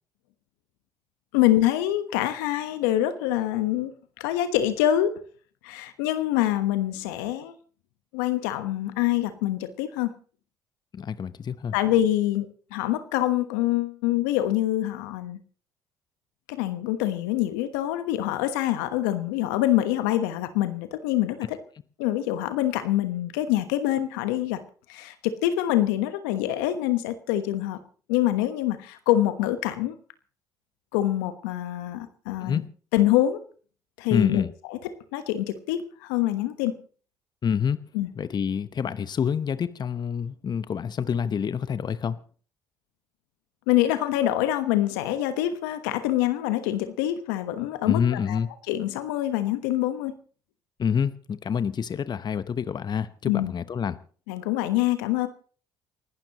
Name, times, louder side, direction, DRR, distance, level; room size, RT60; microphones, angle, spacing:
voice 1, 1.3-3.9 4.2-5.2 5.6-7.6 8.1-10.1 11.7-12.5 12.7-15.4 16.5-21.6 22.0-24.6 24.9-27.8 28.1-30.0 30.9-32.6 32.9-33.4 34.0-34.4 34.7-34.8 35.1-36.8 37.9-38.1 43.7-48.0 48.3-48.4 48.7-50.2 53.2-53.5 54.3-55.3, left 13 dB, 80° left, 1.2 m, -25 dB
voice 2, 10.9-11.7 32.4-32.7 34.1-34.5 37.4-37.8 38.2-42.2 47.8-48.5 50.8-54.0, left 7 dB, 40° left, 0.9 m, -27 dB
29.5 x 11.5 x 3.0 m
hypercardioid pair, 55°, 11 cm